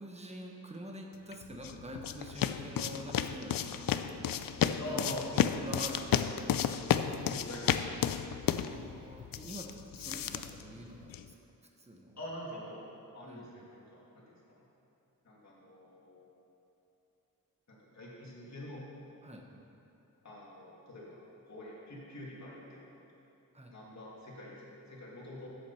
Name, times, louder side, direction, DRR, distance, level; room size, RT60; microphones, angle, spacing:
voice 1, 0.0-4.4 4.8-6.5 7.1-7.2 8.7-11.3 11.8-12.1 13.2-13.5 19.2-19.4 23.5-23.7, right 1 dB, 20° right, 1 dB, 1.2 m, -46 dB
sound 1, 1.3-11.3, left 9 dB, 75° left, 0.5 m, -33 dB
voice 2, 4.8-5.3 7.1-8.3 12.2-12.9 13.1-14.6 15.2-16.4 17.7-18.8 20.2-21.2 21.5-23.0 23.7-25.5, left 1 dB, 50° left, -6 dB, 2.9 m, -45 dB
14.0 x 8.1 x 4.5 m, 2.9 s
wide cardioid pair, 125°, 34 cm